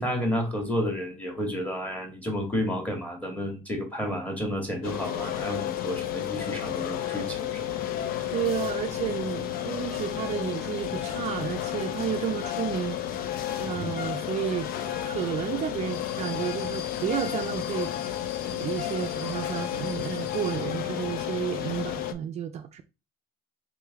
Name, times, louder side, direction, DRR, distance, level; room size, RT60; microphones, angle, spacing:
voice 1, 0.0-7.8 8.1-8.2 13.7-13.9, equal, 10° left, 1.5 m, -31 dB
sound 1, 4.8-22.1, left 11 dB, 65° left, 0.5 m, -32 dB
voice 2, 8.3-13.0 13.6-14.7 15.0-17.9 18.5-22.8, right 9 dB, 40° right, 0.4 m, -31 dB
3.7 x 3.2 x 3.4 m
cardioid pair, 120°, 16 cm